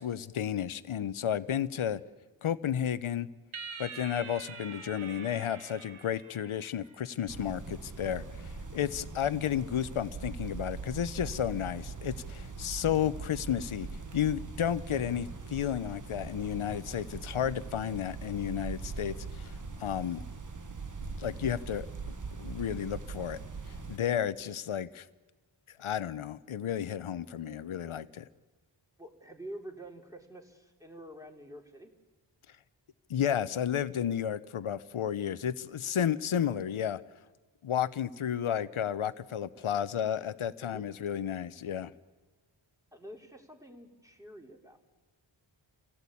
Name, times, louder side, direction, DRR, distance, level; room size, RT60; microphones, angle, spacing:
voice 1, 0.0-2.0 2.4-3.3 3.8-13.9 14.1-19.5 19.8-20.2 21.2-21.9 22.4-23.4 23.9-25.0 25.8-28.2 33.1-37.0 37.6-41.9, left 9 dB, 75° left, 16 dB, 0.9 m, -32 dB
sound 1, 3.5-7.1, right 5 dB, 75° right, 1.6 m, -45 dB
sound 2, 7.3-24.0, right 4 dB, 40° right, 1.4 m, -41 dB
voice 2, 29.0-31.9 40.6-40.9 42.9-44.8, right 1 dB, 5° right, 1 dB, 3.0 m, -47 dB
28.0 x 16.5 x 8.5 m, 1.2 s
wide cardioid pair, 105°, 49 cm